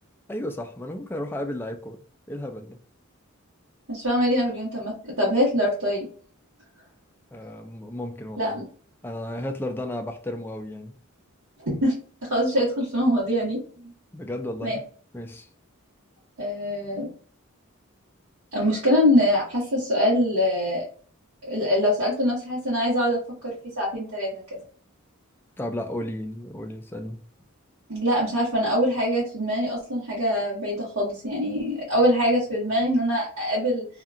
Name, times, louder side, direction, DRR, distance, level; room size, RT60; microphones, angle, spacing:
voice 1, 0.3-2.8 7.3-8.6 9.0-10.9 14.1-14.8 15.1-15.5 25.6-27.2, left 1 dB, 10° left, 0.3 m, -33 dB
voice 2, 3.9-6.1 8.4-8.7 11.7-11.9 12.3-13.9 14.6-14.8 16.4-17.1 18.5-20.8 21.4-24.6 27.9-33.8, equal, 85° right, 1.4 m, -24 dB
2.8 x 2.4 x 2.4 m
head